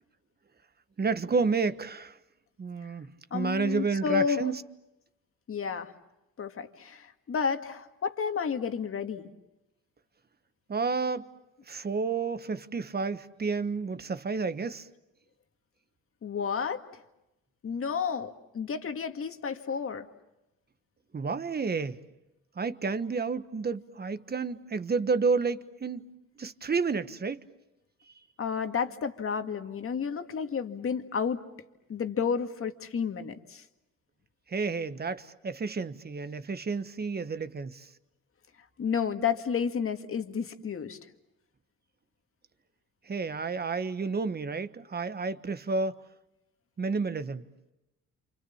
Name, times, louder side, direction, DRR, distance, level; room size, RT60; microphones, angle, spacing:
voice 1, 1.0-2.2 2.6-4.6 10.7-11.3 11.7-14.9 21.1-22.0 22.6-26.1 26.4-27.4 34.5-37.9 43.1-46.0 46.8-47.4, right 4 dB, 30° right, 1.4 m, -30 dB
voice 2, 3.3-4.4 5.5-5.9 6.4-9.3 16.2-16.8 17.6-20.1 28.4-31.4 31.9-33.6 38.8-41.0, left 6 dB, 45° left, 2.0 m, -31 dB
29.0 x 27.0 x 7.2 m
cardioid pair, 90°, 30 cm